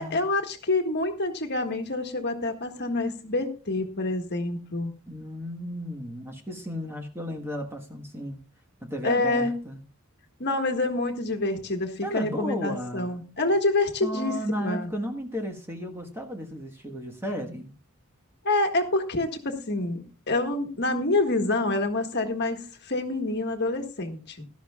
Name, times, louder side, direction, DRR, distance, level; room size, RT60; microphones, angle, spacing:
voice 1, 0.0-4.9 9.0-9.5 10.4-14.9 18.4-24.4, left 2 dB, 50° left, 5 dB, 1.6 m, -27 dB
voice 2, 5.1-8.4 8.8-9.8 12.0-13.2 14.0-17.7, equal, 10° right, 3 dB, 1.3 m, -34 dB
17.5 x 12.5 x 2.3 m, 0.35 s
head